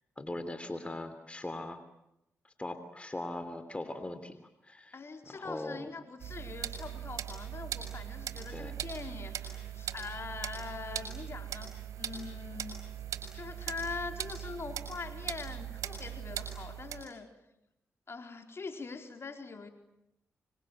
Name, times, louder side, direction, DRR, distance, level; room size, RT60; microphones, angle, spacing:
voice 1, 0.2-1.8 2.4-5.0 5.3-5.9 8.5-8.7, left 1 dB, 20° left, 10 dB, 3.1 m, -40 dB
voice 2, 4.9-12.9 13.3-17.3 18.1-19.7, left 4 dB, 50° left, 6 dB, 4.1 m, -43 dB
sound 1, 6.2-17.1, right 10 dB, 80° right, 5.1 m, -40 dB
26.0 x 23.5 x 9.1 m, 0.85 s
supercardioid pair, 50°, 5 cm